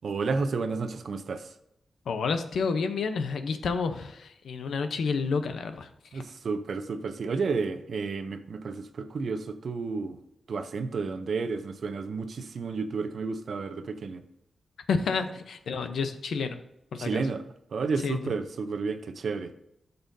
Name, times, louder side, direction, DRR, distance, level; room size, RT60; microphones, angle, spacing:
voice 1, 0.0-1.5 6.1-10.2 10.5-14.2 17.0-17.4 17.7-19.5, right 4 dB, 60° right, 9 dB, 0.7 m, -31 dB
voice 2, 2.1-5.9 6.1-6.2 14.9-16.6 16.9-17.2 18.0-18.3, left 5 dB, 90° left, 8 dB, 0.8 m, -30 dB
12.5 x 6.8 x 2.7 m, 0.80 s
wide cardioid pair, 165°, 0 cm